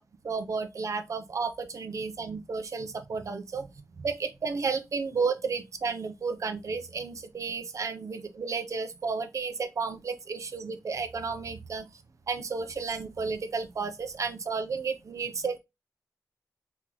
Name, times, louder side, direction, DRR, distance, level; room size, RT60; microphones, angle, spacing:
voice 1, 0.2-11.9 12.3-15.6, right 4 dB, 50° right, 0.7 m, -32 dB
4.4 x 3.1 x 3.8 m
wide cardioid pair, 165°, 7 cm